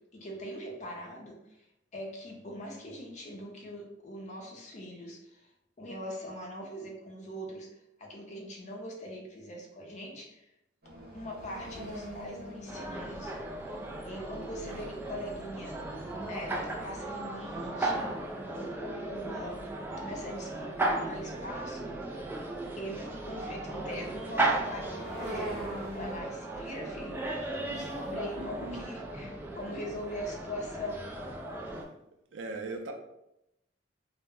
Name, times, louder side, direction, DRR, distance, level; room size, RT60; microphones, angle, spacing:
voice 1, 0.0-1.6 1.9-5.5 5.8-7.7 8.0-10.5 11.1-15.8 16.2-22.3 22.8-31.1, equal, 40° left, 0 dB, 0.5 m, -42 dB
sound 1, 10.8-18.0 18.4-18.5 18.8-19.3 20.1-20.2 20.8-26.2, equal, 55° right, 0.7 m, -45 dB
sound 2, 12.7-31.8, right 2 dB, 10° right, 0.3 m, -36 dB
voice 2, 27.7-28.8 31.7-32.0 32.3-32.9, right 3 dB, 90° right, 4 dB, 0.4 m, -41 dB
2.1 x 2.0 x 3.5 m, 0.84 s
head